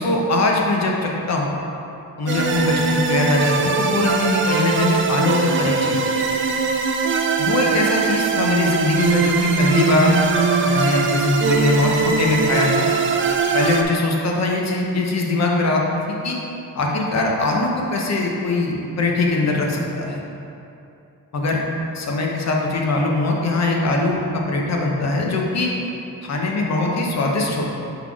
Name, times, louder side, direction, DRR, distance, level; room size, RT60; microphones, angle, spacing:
voice 1, 0.0-1.5 2.2-6.0 7.4-10.2 10.6-12.9 13.5-16.4 16.7-20.2 21.3-21.6 21.9-25.7 26.2-27.7, left 2 dB, 50° left, -1 dB, 0.9 m, -21 dB
sound 1, 2.3-13.8, right 4 dB, 35° right, 0.4 m, -21 dB
5.7 x 4.1 x 4.7 m, 2.7 s
wide cardioid pair, 150°, 35 cm